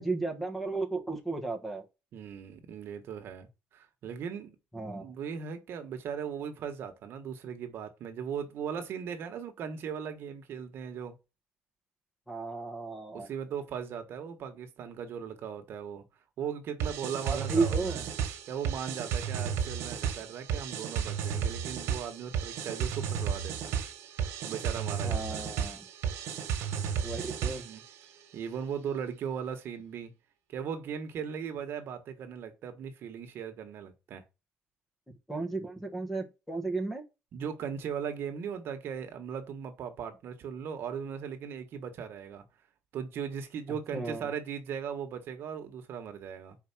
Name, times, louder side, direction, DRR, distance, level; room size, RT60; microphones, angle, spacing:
voice 1, 0.0-1.8 4.7-5.0 12.3-13.3 17.2-18.0 25.0-25.8 27.0-27.6 35.3-37.0 43.9-44.2, right 3 dB, 5° left, 1.3 m, -33 dB
voice 2, 2.1-4.6 5.0-11.2 13.1-16.1 16.4-18.0 18.5-23.8 24.4-25.5 27.5-27.8 28.3-30.1 30.5-34.2 37.3-42.4 42.9-46.6, right 7 dB, 60° right, 1.4 m, -38 dB
sound 1, 16.8-27.9, right 7 dB, 80° right, 1.4 m, -33 dB
5.6 x 4.7 x 6.0 m
cardioid pair, 155°, 5 cm